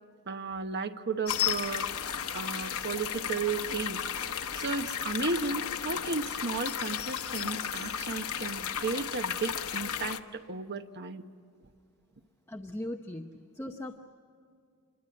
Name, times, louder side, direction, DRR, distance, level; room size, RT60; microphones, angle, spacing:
voice 1, 0.3-1.9 2.3-11.2, right 4 dB, 50° right, 8 dB, 1.0 m, -34 dB
sound 1, 1.3-10.2, left 8 dB, 70° left, 1.0 m, -34 dB
voice 2, 12.5-14.0, left 1 dB, 10° left, 4 dB, 0.8 m, -39 dB
27.0 x 22.5 x 9.7 m, 2.2 s
head